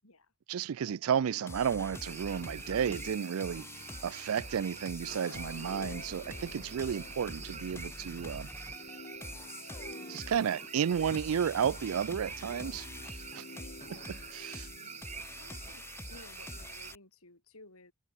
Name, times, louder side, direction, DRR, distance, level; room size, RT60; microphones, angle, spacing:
voice 1, 0.5-3.7 4.0-8.5 10.1-12.8 13.3-13.4 14.3-14.7, right 8 dB, 80° right, 0.4 m, -32 dB
sound 1, 1.3-15.9, left 2 dB, 50° left, 1.6 m, -52 dB
sound 2, 1.5-17.0, left 2 dB, 10° left, 0.7 m, -46 dB
sound 3, 1.9-16.9, right 7 dB, 30° right, 1.9 m, -47 dB
voice 2, 12.6-13.0 13.8-14.1 14.8-15.0 15.4-17.9, left 2 dB, 85° left, 7.9 m, -56 dB
head